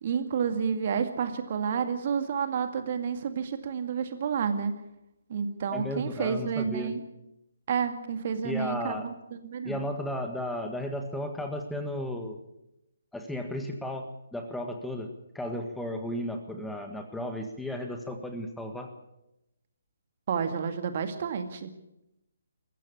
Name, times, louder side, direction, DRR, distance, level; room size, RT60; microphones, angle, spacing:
voice 1, 0.0-4.7 5.3-7.0 7.7-9.1 9.4-9.8 20.3-21.7, right 6 dB, 40° right, 8 dB, 2.1 m, -30 dB
voice 2, 5.7-6.9 8.4-9.1 9.6-12.4 13.1-18.9, left 1 dB, 5° left, 4 dB, 1.7 m, -34 dB
21.0 x 15.5 x 8.5 m, 0.88 s
figure-of-eight pair, 140°, 0 cm